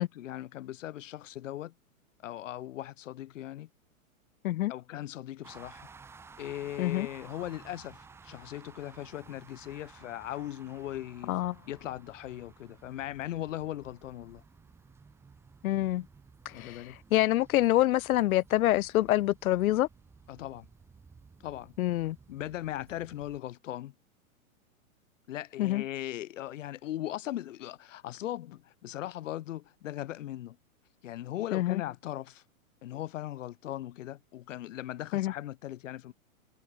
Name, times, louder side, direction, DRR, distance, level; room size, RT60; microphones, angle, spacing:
voice 1, 0.0-1.7 2.2-3.7 4.7-5.9 6.4-11.4 11.7-14.4 16.5-17.0 20.3-20.7 21.4-21.7 22.3-23.9 25.3-30.6 31.0-32.4 32.8-36.1, left 13 dB, 60° left, 2.1 m, -39 dB
sound 1, 5.4-23.4, right 5 dB, 5° right, 0.8 m, -55 dB
voice 2, 15.6-16.0 16.5-16.8 17.1-19.9 21.8-22.2 25.6-25.8 31.5-31.8 35.1-35.3, left 15 dB, 75° left, 0.6 m, -26 dB
hypercardioid pair, 150°, 43 cm